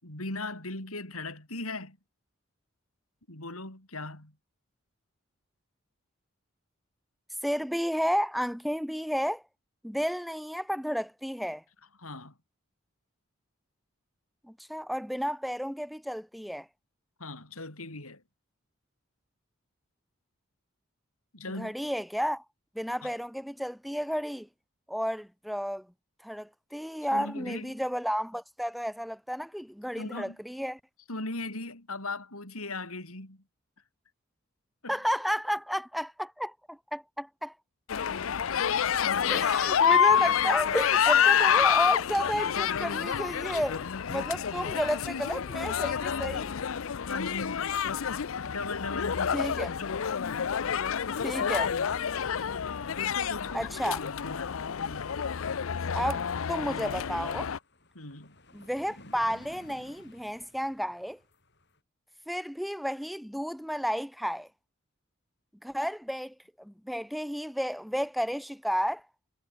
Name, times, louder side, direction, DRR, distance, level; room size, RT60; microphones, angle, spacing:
voice 1, 0.0-2.0 3.3-4.3 12.0-12.3 17.2-18.2 21.3-21.7 23.0-23.1 27.1-27.7 30.0-30.4 31.1-33.4 34.8-35.0 39.0-39.5 47.0-47.8 48.4-49.5 49.8-50.0 50.8-50.9 53.0-55.2 57.9-58.4, left 2 dB, 90° left, 6.8 m, -39 dB
voice 2, 7.4-9.4 9.8-11.6 14.5-16.7 21.6-22.4 22.7-24.5 24.9-25.9 26.2-30.8 34.9-37.5 39.3-46.5 49.3-49.7 51.2-51.7 53.5-54.1 55.9-57.5 58.5-61.2 62.3-64.5 65.6-69.0, equal, ahead, 1.0 m, -32 dB
sound 1, 37.9-57.6, left 8 dB, 75° left, 0.5 m, -28 dB
sound 2, 57.1-61.8, left 1 dB, 50° left, 5.7 m, -55 dB
head